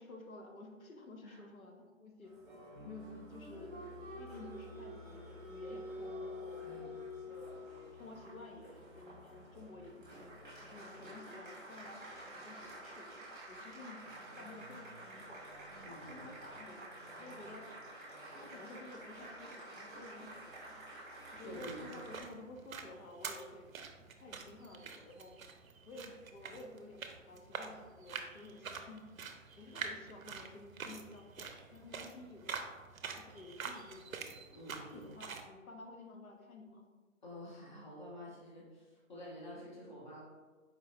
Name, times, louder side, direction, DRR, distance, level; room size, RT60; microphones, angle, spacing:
voice 1, 0.0-2.3 2.8-6.7 7.3-10.3 10.6-13.2 13.5-14.1 14.3-15.5 15.9-17.6 18.3-20.8 21.4-23.7 24.2-25.3 25.9-29.0 29.6-32.6 33.0-34.3 34.8-36.9, left 2 dB, 85° left, 1 dB, 0.8 m, -52 dB
Applause, 2.2-22.2, equal, 15° right, 1.0 m, -49 dB
voice 2, 6.6-6.9 15.8-16.4 21.4-22.3 34.5-35.1 37.2-40.2, equal, 35° left, -5 dB, 0.9 m, -49 dB
sound 1, 21.4-35.5, right 5 dB, 80° right, 0.6 m, -47 dB
4.6 x 2.9 x 2.5 m, 1.3 s
hypercardioid pair, 170°, 41 cm